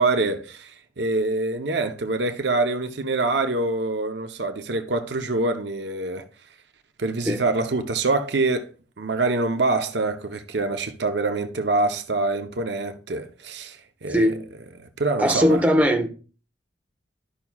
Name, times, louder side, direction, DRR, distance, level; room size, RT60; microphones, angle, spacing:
voice 1, 0.0-6.2 7.0-8.7 9.0-14.4 14.8-15.7, right 3 dB, 70° right, 0.8 m, -25 dB
voice 2, 14.1-14.4 15.2-16.1, equal, 10° right, 1.1 m, -19 dB
13.0 x 5.8 x 2.3 m
head